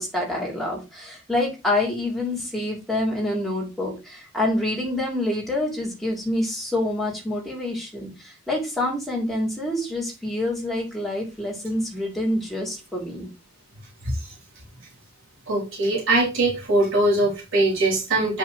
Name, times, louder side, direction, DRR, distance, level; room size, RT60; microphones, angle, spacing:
voice 1, 0.0-13.3, left 1 dB, ahead, -3 dB, 3.3 m, -27 dB
voice 2, 14.0-14.3 15.5-18.4, right 2 dB, 65° right, -4 dB, 4.0 m, -22 dB
9.3 x 5.6 x 3.2 m, 0.28 s
head